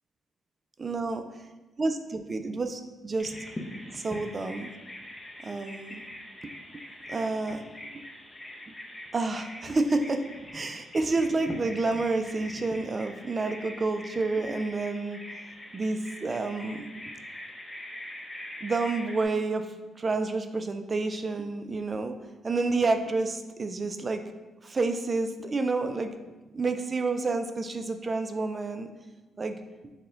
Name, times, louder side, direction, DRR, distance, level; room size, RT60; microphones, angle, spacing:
voice 1, 0.8-1.2 1.8-3.3 3.9-4.7 5.4-6.0 6.4-6.5 7.1-7.6 8.7-8.8 9.1-10.2 10.5-15.2 15.7-16.9 18.6-19.7 20.0-22.1 22.4-24.2 24.6-26.1 26.5-28.9 29.4-29.6, right 3 dB, 30° right, 7 dB, 0.3 m, -29 dB
Bird vocalization bird call bird song, 3.2-19.3, left 1 dB, 20° left, 0.5 m, -43 dB
4.2 x 2.2 x 3.8 m, 1.1 s
cardioid pair, 95°, 0 cm